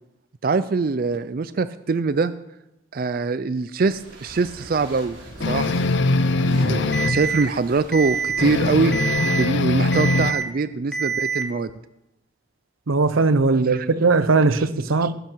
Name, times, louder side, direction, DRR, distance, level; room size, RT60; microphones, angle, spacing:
voice 1, 0.4-2.3 2.9-5.8 6.3-11.7 13.5-13.9 14.6-14.7 15.0-15.1, right 4 dB, 45° right, 0.4 m, -24 dB
sound 1, 3.8-9.2, right 1 dB, 65° right, 3.9 m, -43 dB
sound 2, 5.4-7.2 8.4-10.3, left 2 dB, 60° left, 0.7 m, -21 dB
Alarm, 6.9-7.4 7.9-8.4 8.9-9.4 9.9-10.4 10.9-11.4, right 6 dB, 5° left, 1.4 m, -25 dB
voice 2, 12.9-15.1, right 3 dB, 85° right, 0.7 m, -19 dB
18.0 x 10.0 x 4.6 m
head